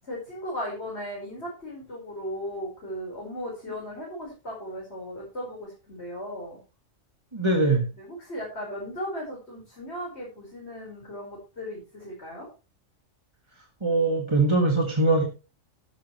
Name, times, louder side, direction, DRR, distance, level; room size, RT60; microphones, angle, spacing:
voice 1, 0.0-6.6 7.9-12.5, equal, 50° left, -3 dB, 5.6 m, -36 dB
voice 2, 7.3-7.9 13.8-15.2, right 2 dB, 20° right, 2 dB, 1.9 m, -22 dB
13.0 x 11.5 x 3.2 m, 0.31 s
omnidirectional pair, 1.4 m